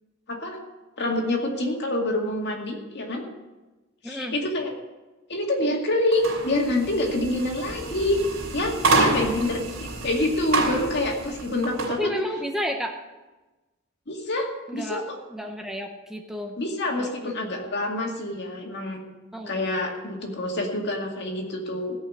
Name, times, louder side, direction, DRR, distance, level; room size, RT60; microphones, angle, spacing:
voice 1, 1.0-3.2 4.0-4.7 5.3-8.2 8.5-12.1 14.1-15.0 16.6-19.0 19.5-22.0, left 1 dB, 55° left, 1 dB, 2.2 m, -27 dB
voice 2, 4.0-4.3 11.9-12.9 14.7-15.0 15.3-16.6 17.0-17.1 17.6-17.8 19.3-19.5, equal, ahead, 2 dB, 0.9 m, -31 dB
sound 1, 6.1-12.0, right 3 dB, 85° right, 3.2 m, -28 dB
16.5 x 5.5 x 8.5 m, 1.1 s
head